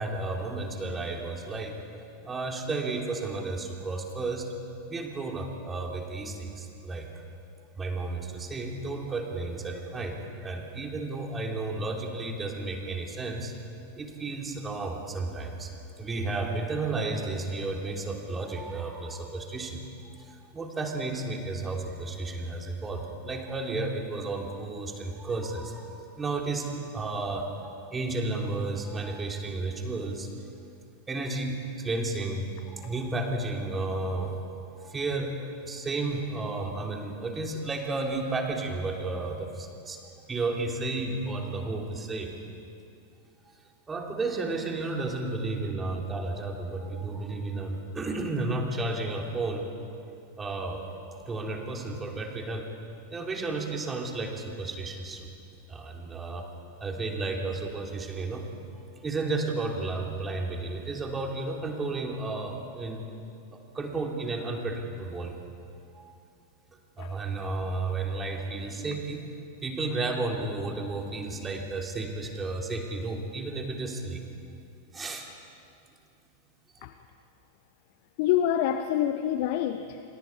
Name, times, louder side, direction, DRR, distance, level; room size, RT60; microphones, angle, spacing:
voice 1, 0.0-1.8 2.2-4.5 4.9-7.1 7.8-13.5 13.9-15.7 16.0-19.8 20.1-26.7 26.9-30.3 31.1-40.0 40.3-42.3 43.4-43.6 43.9-49.7 50.4-50.9 51.2-52.7 53.1-55.3 55.7-56.5 56.8-58.5 58.8-63.0 63.5-65.3 65.9-66.1 67.0-69.3 69.6-74.2 74.9-75.3 76.8-76.9, right 3 dB, 15° right, 3.4 m, -32 dB
voice 2, 78.2-80.0, left 11 dB, 50° left, 0.9 m, -26 dB
28.0 x 26.0 x 4.8 m
figure-of-eight pair, 90°, 0 cm